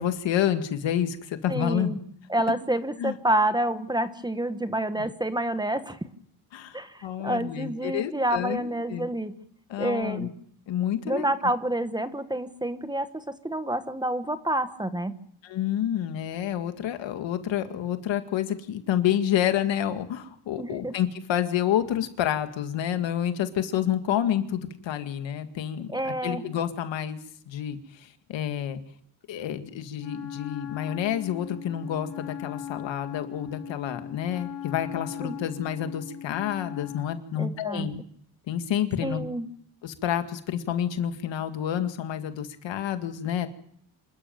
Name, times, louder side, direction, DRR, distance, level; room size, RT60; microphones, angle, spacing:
voice 1, 0.0-1.9 3.0-3.2 5.0-5.1 6.5-9.1 9.7-10.3 10.7-11.3 15.4-27.2 27.5-28.8 29.3-38.0 38.5-39.2 39.8-43.5, left 10 dB, 85° left, 9 dB, 2.0 m, -29 dB
voice 2, 1.5-2.0 2.3-6.0 6.7-9.3 9.8-10.3 11.0-15.2 20.6-21.0 25.9-26.4 35.2-35.4 37.4-37.9 39.0-39.5, right 1 dB, 10° right, 10 dB, 1.2 m, -28 dB
Wind instrument woodwind instrument, 30.0-37.2, left 9 dB, 60° left, 4.4 m, -39 dB
26.5 x 13.0 x 9.1 m, 0.64 s
cardioid pair, 150°, 44 cm